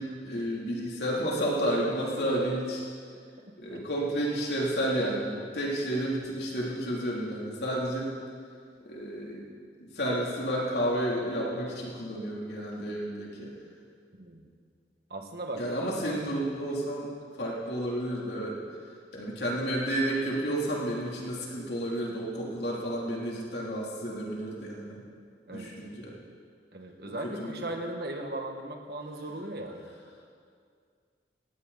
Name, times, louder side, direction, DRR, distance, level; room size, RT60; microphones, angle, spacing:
voice 1, 0.0-2.8 3.6-8.1 8.8-9.4 9.8-13.5 15.6-17.1 17.4-18.6 19.1-25.0 25.5-26.1 27.0-27.5, right 1 dB, 70° left, -4 dB, 3.2 m, -31 dB
voice 2, 14.1-14.5 15.1-16.4 25.5-25.7 26.7-29.8, right 1 dB, 60° right, 3 dB, 1.8 m, -38 dB
19.0 x 18.0 x 4.2 m, 2.1 s
head